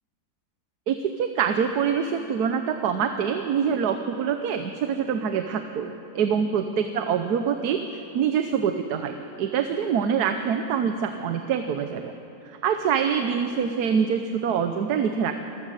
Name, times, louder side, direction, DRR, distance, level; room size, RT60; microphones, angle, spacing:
voice 1, 0.9-7.8 8.1-12.1 12.4-15.3, right 7 dB, 75° right, 7 dB, 1.3 m, -25 dB
24.5 x 14.0 x 7.6 m, 2.9 s
omnidirectional pair, 1.7 m